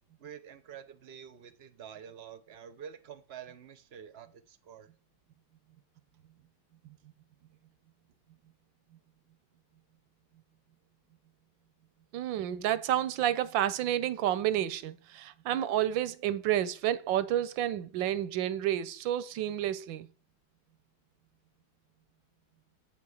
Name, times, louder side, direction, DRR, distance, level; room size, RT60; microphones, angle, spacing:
voice 1, 0.2-4.9, right 8 dB, 55° right, 0.7 m, -48 dB
voice 2, 12.1-20.1, right 11 dB, 85° right, 1.4 m, -30 dB
7.6 x 5.8 x 6.3 m
omnidirectional pair, 2.0 m